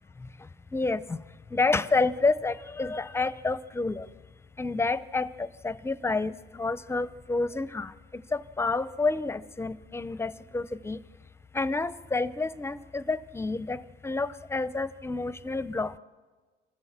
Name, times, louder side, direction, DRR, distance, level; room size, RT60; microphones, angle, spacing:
voice 1, 0.7-1.2 1.5-4.1 4.6-11.0 11.5-15.9, left 3 dB, 15° left, 16 dB, 0.7 m, -29 dB
26.5 x 15.0 x 7.4 m, 1.4 s
cardioid pair, 110°, 17 cm